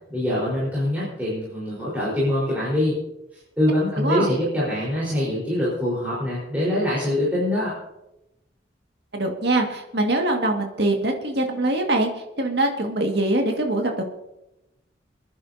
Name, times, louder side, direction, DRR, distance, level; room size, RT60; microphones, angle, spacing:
voice 1, 0.1-3.0 3.6-7.7, left 1 dB, 10° right, -9 dB, 4.4 m, -24 dB
voice 2, 4.0-4.3 9.1-14.0, right 2 dB, 65° right, 2 dB, 2.0 m, -23 dB
27.5 x 10.0 x 2.8 m, 0.91 s
head